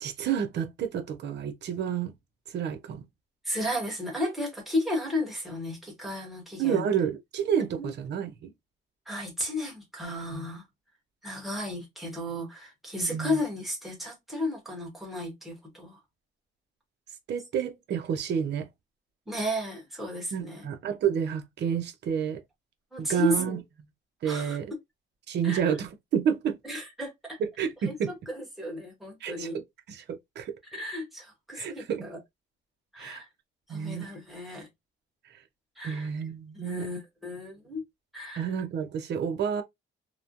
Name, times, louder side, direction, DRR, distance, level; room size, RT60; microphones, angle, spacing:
voice 1, 0.0-2.1 2.5-3.0 6.6-8.5 10.3-10.5 13.0-13.4 17.3-18.7 20.3-22.4 23.0-23.6 24.2-24.7 25.3-26.6 27.4-28.1 29.2-29.6 29.9-30.6 31.6-32.1 33.0-33.2 33.7-34.1 35.8-36.9 38.3-39.6, right 8 dB, 55° right, 0.7 m, -30 dB
voice 2, 3.4-6.9 7.7-7.9 9.1-10.6 11.2-16.0 19.3-20.6 22.9-23.6 24.2-24.6 25.4-25.7 26.6-27.4 27.9-29.6 30.7-32.2 32.9-33.3 33.7-34.7 35.8-36.1 36.5-37.8 38.1-38.5, left 1 dB, ahead, 1.1 m, -33 dB
3.0 x 2.1 x 2.5 m
cardioid pair, 160°, 21 cm